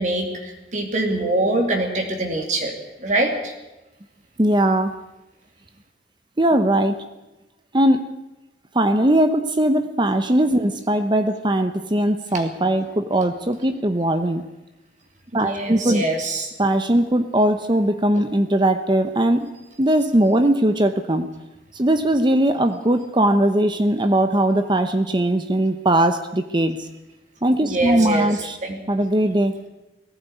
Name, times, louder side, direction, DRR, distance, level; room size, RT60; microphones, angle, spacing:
voice 1, 0.0-2.7 3.0-3.5 15.3-16.5 27.6-28.3 28.6-28.8, right 2 dB, 45° right, 2 dB, 2.8 m, -24 dB
voice 2, 4.4-4.9 6.4-7.0 7.7-8.0 8.7-14.4 15.3-16.1 16.6-19.5 19.8-21.3 21.7-26.9 27.4-28.6 28.9-29.5, right 1 dB, 25° right, 9 dB, 0.9 m, -19 dB
18.5 x 15.5 x 9.3 m, 1.0 s
head